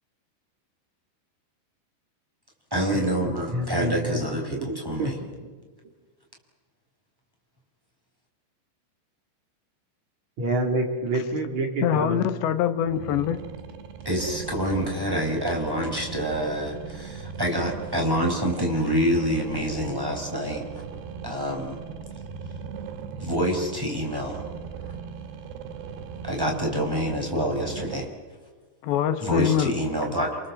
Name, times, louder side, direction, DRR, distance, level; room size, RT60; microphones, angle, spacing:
voice 1, 2.7-5.2 14.0-20.6 21.2-21.8 23.2-24.4 24.8-24.9 26.3-28.1 29.2-30.4, equal, 5° right, 1 dB, 5.1 m, -27 dB
voice 2, 3.5-4.2 4.5-4.7 5.0-5.3 10.4-12.3, right 2 dB, 45° right, 2 dB, 4.4 m, -27 dB
voice 3, 11.8-13.4 28.8-29.7, left 10 dB, 85° left, 10 dB, 3.4 m, -24 dB
sound 1, 12.9-28.1, right 6 dB, 75° right, 3.6 m, -38 dB
28.0 x 26.5 x 7.8 m, 1.4 s
omnidirectional pair, 5.0 m